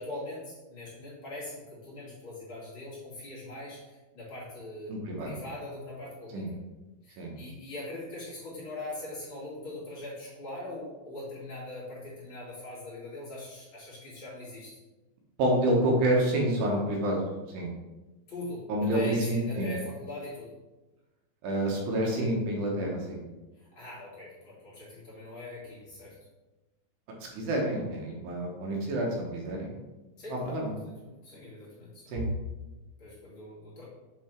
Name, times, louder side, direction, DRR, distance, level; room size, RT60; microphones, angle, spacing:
voice 1, 0.0-4.9 5.2-6.6 7.0-14.8 18.3-20.5 23.7-26.1 30.2-32.1 33.0-33.8, left 1 dB, 35° left, -9 dB, 2.3 m, -41 dB
voice 2, 4.9-5.3 6.3-6.5 7.2-7.3 15.4-17.2 17.5-17.7 18.7-19.7 21.4-23.2 27.4-29.7 30.3-30.7 32.1-32.2, right 1 dB, 70° right, -1 dB, 3.1 m, -28 dB
7.8 x 4.0 x 4.4 m, 1.1 s
omnidirectional pair, 5.2 m